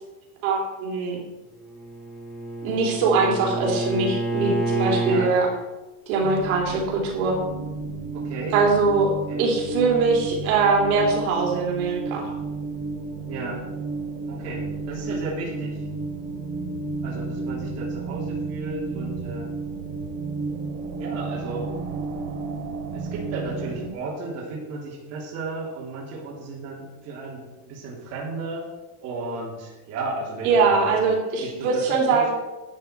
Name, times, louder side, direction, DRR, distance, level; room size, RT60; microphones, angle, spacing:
voice 1, 0.4-1.2 2.6-5.5 6.1-7.4 8.5-9.1 9.4-12.3 30.4-32.3, right 4 dB, 65° right, -1 dB, 3.3 m, -22 dB
Bowed string instrument, 1.6-5.4, right 2 dB, ahead, 1.3 m, -28 dB
sound 1, 6.2-23.9, right 3 dB, 85° right, 2.4 m, -32 dB
voice 2, 8.1-8.5 9.3-9.4 13.3-13.6 14.3-15.8 17.0-19.5 21.0-21.7 22.9-28.6 29.0-31.1 31.4-32.3, right 3 dB, 35° right, -4 dB, 3.4 m, -34 dB
12.0 x 9.1 x 4.6 m, 1.1 s
supercardioid pair, 170°, 46 cm